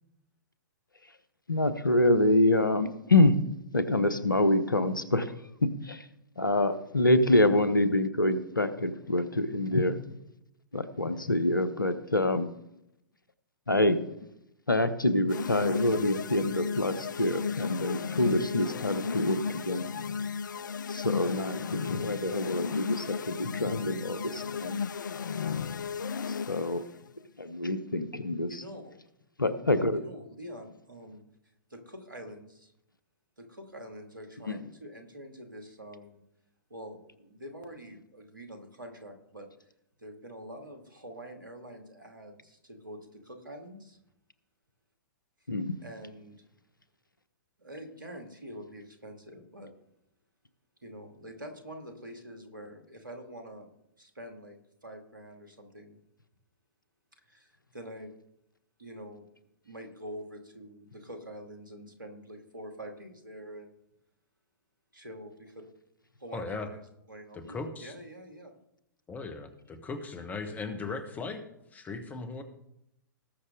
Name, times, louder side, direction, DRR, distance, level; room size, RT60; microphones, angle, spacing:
voice 1, 1.5-3.4 3.7-5.3 5.8-6.0 6.4-10.2 10.7-12.5 13.7-14.0 14.7-19.9 20.9-24.8 26.3-26.8 27.4-28.6 29.4-30.0 34.5-34.6 45.5-45.7, left 1 dB, 85° left, 13 dB, 1.1 m, -26 dB
sound 1, 15.3-26.9, left 6 dB, 70° left, 0.4 m, -34 dB
voice 2, 28.5-29.0 29.9-31.2 31.7-32.7 33.4-36.2 36.7-39.5 40.0-44.0 45.8-46.4 47.6-49.7 50.8-53.7 54.0-56.0 57.3-58.1 58.8-59.2 59.6-63.8 64.9-65.6 66.2-66.8 67.1-68.5, equal, 80° right, 4 dB, 2.3 m, -46 dB
voice 3, 66.3-66.7 67.3-67.9 69.1-71.4 71.7-72.4, left 4 dB, 15° left, 6 dB, 1.5 m, -38 dB
19.0 x 6.5 x 3.8 m, 0.82 s
figure-of-eight pair, 110°, 11 cm